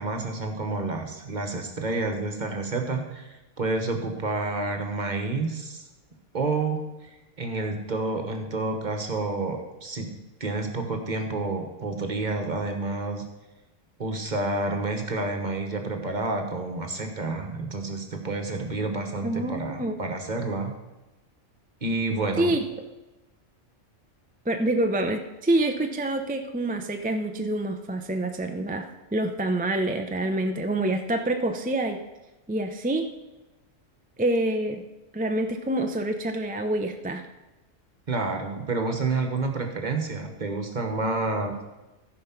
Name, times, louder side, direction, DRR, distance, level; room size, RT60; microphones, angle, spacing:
voice 1, 0.0-5.8 6.3-10.1 10.4-13.2 14.0-20.7 21.8-22.5 38.1-41.6, right 3 dB, 40° right, 5 dB, 1.3 m, -29 dB
voice 2, 19.2-19.9 22.4-22.6 24.5-32.0 32.5-33.1 34.2-34.8 35.1-37.2, right 1 dB, 10° right, 5 dB, 0.4 m, -26 dB
14.0 x 5.2 x 5.9 m, 1.0 s
omnidirectional pair, 1.3 m